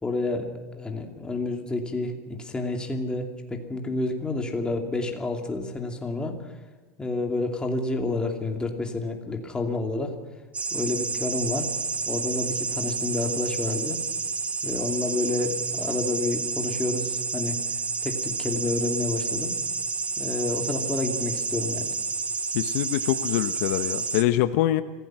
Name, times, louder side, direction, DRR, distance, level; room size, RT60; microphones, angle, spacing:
voice 1, 0.0-6.4 7.0-10.1 10.7-11.7 12.1-14.0 14.6-17.6 18.0-19.6 20.2-21.9, left 2 dB, 10° left, 2 dB, 2.7 m, -29 dB
sound 1, 10.5-24.2, right 4 dB, 15° right, 1.0 m, -30 dB
voice 2, 22.5-24.8, left 14 dB, 65° left, 11 dB, 1.0 m, -24 dB
26.0 x 16.5 x 6.2 m, 1.3 s
supercardioid pair, 155°, 8 cm